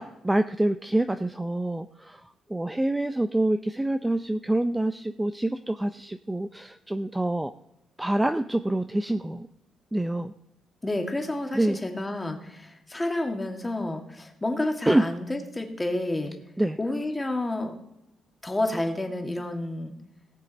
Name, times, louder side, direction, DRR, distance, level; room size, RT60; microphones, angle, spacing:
voice 1, 0.0-2.2 2.5-7.5 8.0-9.5 9.9-10.3 11.5-11.8 14.9-15.0 16.6-16.8, right 1 dB, 10° right, 9 dB, 0.5 m, -26 dB
voice 2, 10.8-16.3 16.8-17.8 18.4-19.9, left 1 dB, 15° left, 3 dB, 2.0 m, -30 dB
18.0 x 6.7 x 4.1 m, 0.88 s
cardioid pair, 90°, 0 cm